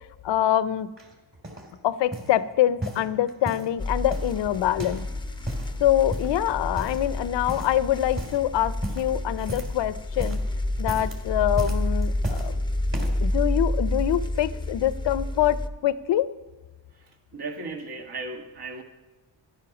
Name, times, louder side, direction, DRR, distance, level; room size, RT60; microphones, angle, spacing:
voice 1, 0.2-0.9 1.8-5.1 5.8-10.4 10.8-12.6 13.2-16.3, left 12 dB, 65° left, 16 dB, 0.6 m, -25 dB
sound 1, 1.0-1.7 2.1-2.4 2.8-3.7 4.1-5.1 5.3-5.7 6.1-6.4 6.8-7.2 7.5-7.8 8.1-8.4 8.8-9.8 10.1-10.5 10.8-11.2 11.6-12.5 12.9-13.3 13.9-14.0, right 1 dB, 25° right, 3.0 m, -35 dB
sound 2, 3.8-15.7, left 1 dB, 10° left, 0.6 m, -29 dB
voice 2, 17.0-18.8, right 3 dB, 50° right, 3 dB, 1.9 m, -36 dB
12.0 x 11.5 x 5.9 m, 1.2 s
cardioid pair, 90°, 48 cm